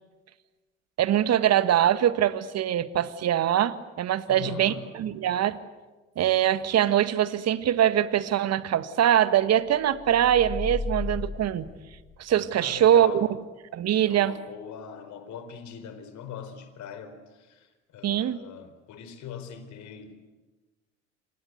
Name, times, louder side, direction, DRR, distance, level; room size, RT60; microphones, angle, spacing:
voice 1, 1.0-5.6 6.2-11.7 12.2-13.3 13.7-14.3 18.0-18.4, right 11 dB, 45° right, 1.7 m, -23 dB
voice 2, 4.3-4.9 12.5-13.3 14.1-20.3, left 8 dB, 50° left, 4.2 m, -41 dB
sound 1, 9.9-12.5, left 4 dB, 25° left, 2.1 m, -35 dB
28.5 x 25.5 x 8.1 m
figure-of-eight pair, 60°, 36 cm